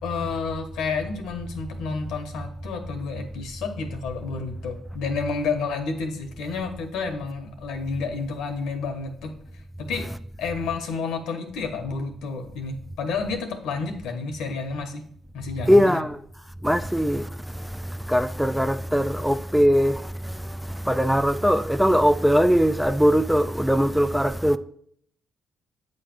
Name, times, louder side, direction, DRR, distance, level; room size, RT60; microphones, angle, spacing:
voice 1, 0.0-9.3 9.8-10.1 10.4-15.0 15.3-16.0, left 4 dB, 90° left, 1.1 m, -30 dB
voice 2, 15.7-16.2 16.6-17.2 18.1-20.0 20.9-24.6, equal, ahead, 0.3 m, -20 dB
8.2 x 3.2 x 5.8 m
cardioid pair, 90°, 0 cm